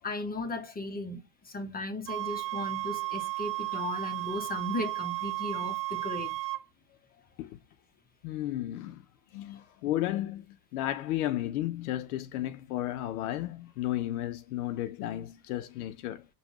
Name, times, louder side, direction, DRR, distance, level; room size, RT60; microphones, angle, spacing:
voice 1, 0.0-6.4, left 2 dB, 20° left, 0.8 m, -36 dB
sound 1, 2.1-6.6, right 22 dB, 30° right, 0.5 m, -34 dB
voice 2, 8.2-9.0 9.3-16.3, left 14 dB, 75° left, 0.7 m, -33 dB
5.1 x 2.4 x 2.9 m
supercardioid pair, 115°, 44 cm